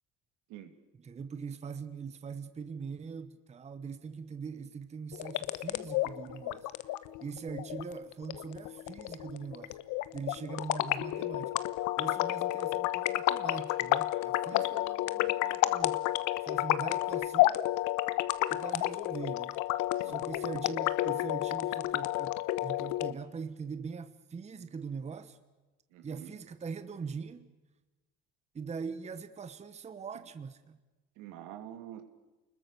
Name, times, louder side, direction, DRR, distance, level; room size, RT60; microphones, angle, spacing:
voice 1, 1.0-6.7 7.2-9.8 10.1-11.5 12.0-16.0 16.4-17.6 18.5-19.5 20.0-25.4 26.0-27.5 28.5-30.8, right 5 dB, 20° right, 1.0 m, -42 dB
sound 1, 5.1-23.1, left 16 dB, 75° left, 1.1 m, -31 dB
voice 2, 25.9-26.4 31.2-32.0, right 12 dB, 80° right, 2.9 m, -47 dB
29.5 x 21.0 x 6.8 m
cardioid pair, 135°, 30 cm